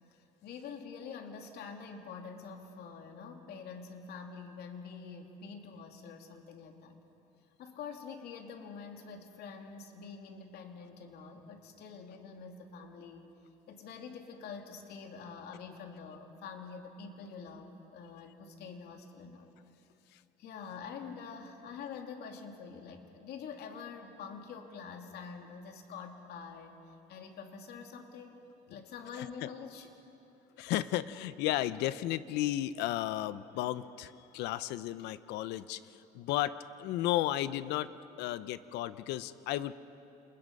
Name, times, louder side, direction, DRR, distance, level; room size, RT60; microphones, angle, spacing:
voice 1, 0.4-7.0 7.6-13.3 13.7-19.5 20.4-28.4 28.7-29.9, left 5 dB, 70° left, 3 dB, 2.8 m, -46 dB
voice 2, 29.2-29.5 30.6-37.9 38.2-39.7, left 14 dB, 90° left, 15 dB, 0.8 m, -34 dB
29.5 x 28.5 x 5.4 m, 2.8 s
cardioid pair, 110°, 17 cm